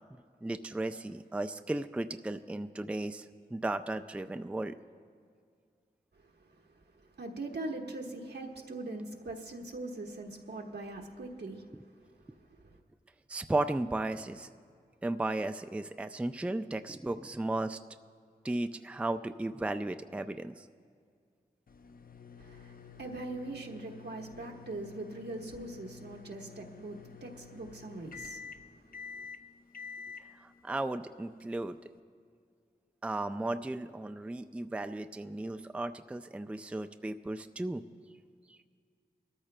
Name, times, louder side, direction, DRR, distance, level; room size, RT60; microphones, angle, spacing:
voice 1, 0.0-3.3 3.5-4.8 13.3-14.5 15.0-17.8 18.4-20.7 30.4-31.8 33.0-37.8 38.5-38.6, right 2 dB, 5° right, 8 dB, 0.3 m, -35 dB
voice 2, 6.2-12.8 22.4-29.3, right 2 dB, 80° right, 1 dB, 1.2 m, -42 dB
sound 1, 21.7-32.0, left 6 dB, 55° left, 0.5 m, -49 dB
22.5 x 13.5 x 2.2 m, 2.1 s
cardioid pair, 50°, 17 cm